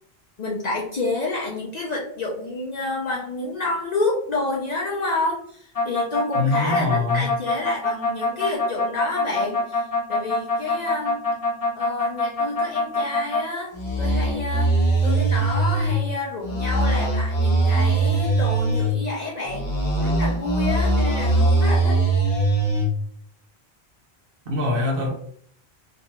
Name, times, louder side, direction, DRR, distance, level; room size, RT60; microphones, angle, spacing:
voice 1, 0.4-11.2 11.7-14.8 15.0-19.7 20.0-22.0, left 2 dB, 55° left, -3 dB, 0.5 m, -29 dB
sound 1, 5.7-13.4 13.7-15.9 16.4-18.9 19.5-22.9, right 1 dB, 35° left, 0.9 m, -22 dB
voice 2, 6.3-7.3 24.5-25.1, left 3 dB, 65° right, 0 dB, 0.9 m, -23 dB
2.5 x 2.2 x 2.9 m, 0.63 s
omnidirectional pair, 1.1 m